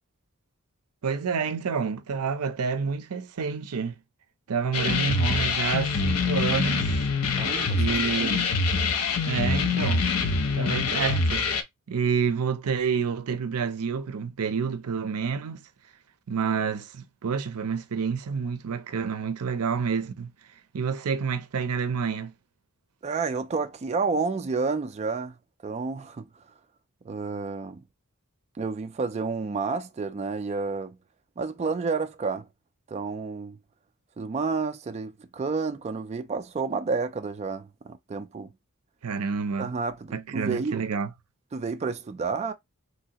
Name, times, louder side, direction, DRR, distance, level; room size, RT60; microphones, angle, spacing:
voice 1, 1.0-4.0 4.5-7.0 7.8-8.5 9.2-10.0 10.5-11.5 11.9-15.6 16.3-20.3 20.7-22.3 39.0-39.7 40.1-41.1, right 6 dB, 80° right, 0.6 m, -28 dB
sound 1, 4.7-11.6, left 4 dB, 90° left, 0.6 m, -25 dB
voice 2, 7.4-8.4 23.0-25.3 25.6-26.3 27.0-27.8 28.6-31.0 31.4-32.5 32.9-33.6 34.2-38.5 39.6-40.8 41.5-42.5, right 4 dB, 30° right, 0.3 m, -30 dB
3.1 x 2.8 x 2.8 m
head